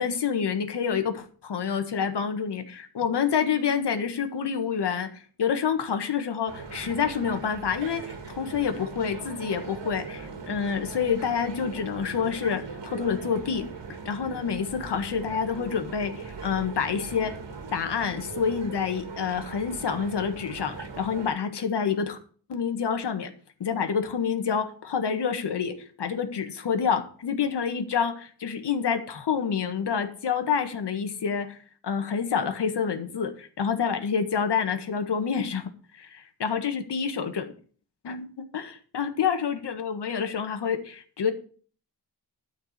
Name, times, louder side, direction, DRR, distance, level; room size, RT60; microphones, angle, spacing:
voice 1, 0.0-13.7 14.0-17.3 17.7-22.2 22.5-23.3 23.6-31.6 31.8-37.5 38.0-41.3, left 6 dB, 75° left, 7 dB, 1.6 m, -28 dB
sound 1, 6.5-21.3, right 4 dB, 85° right, 2.3 m, -40 dB
12.5 x 4.8 x 8.1 m, 0.43 s
wide cardioid pair, 155°, 42 cm